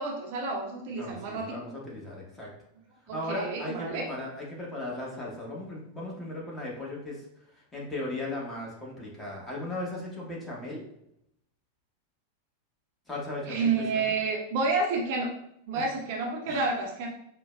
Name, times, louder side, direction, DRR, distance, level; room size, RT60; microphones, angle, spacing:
voice 1, 0.0-1.6 3.1-4.0 13.5-15.3 15.7-17.1, right 3 dB, 50° right, 0 dB, 0.5 m, -29 dB
voice 2, 0.9-2.5 3.1-7.2 7.5-10.8 13.1-14.1 15.7-15.9 16.5-16.6, left 1 dB, 10° left, -4 dB, 1.0 m, -37 dB
4.5 x 2.2 x 2.2 m, 0.76 s
figure-of-eight pair, 90°, 0 cm